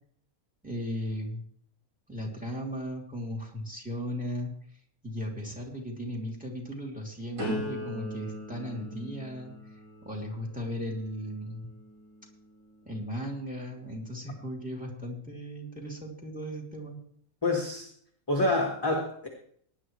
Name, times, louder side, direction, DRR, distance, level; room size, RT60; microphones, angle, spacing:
voice 1, 0.6-1.4 2.1-4.5 5.0-9.5 10.0-11.7 12.8-17.0, equal, 5° right, 0 dB, 3.0 m, -36 dB
sound 1, 7.4-13.2 13.8-14.2, equal, 65° right, 7.2 m, -40 dB
voice 2, 17.4-17.9 18.3-19.3, left 2 dB, 15° left, 0 dB, 1.7 m, -27 dB
19.0 x 10.5 x 3.2 m, 0.64 s
omnidirectional pair, 1.5 m